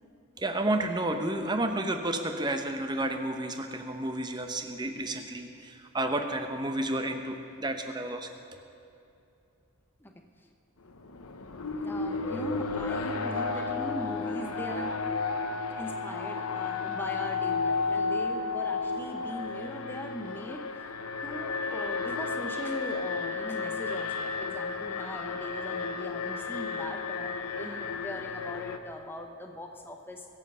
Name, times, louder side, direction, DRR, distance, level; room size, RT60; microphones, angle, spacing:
voice 1, 0.4-8.3, right 1 dB, 20° right, 6 dB, 0.8 m, -31 dB
Alarm, 10.9-28.8, left 4 dB, 80° left, 0.8 m, -33 dB
voice 2, 11.8-15.0 15.8-20.7 21.2-30.3, left 1 dB, 10° left, 3 dB, 0.8 m, -40 dB
22.0 x 7.6 x 5.5 m, 2.7 s
head